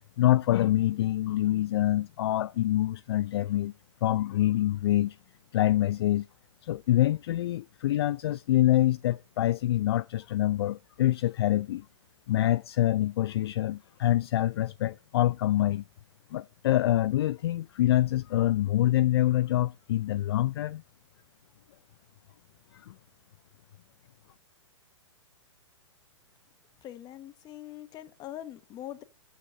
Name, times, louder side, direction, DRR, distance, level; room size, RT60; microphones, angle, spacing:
voice 1, 0.2-3.7 4.0-5.2 5.5-6.3 6.6-11.9 12.3-15.8 16.3-20.8 22.7-22.9, left 14 dB, 50° left, 0.4 m, -26 dB
voice 2, 26.8-29.0, left 12 dB, 25° left, 1.0 m, -42 dB
7.4 x 7.1 x 6.8 m
hypercardioid pair, 120°, 16 cm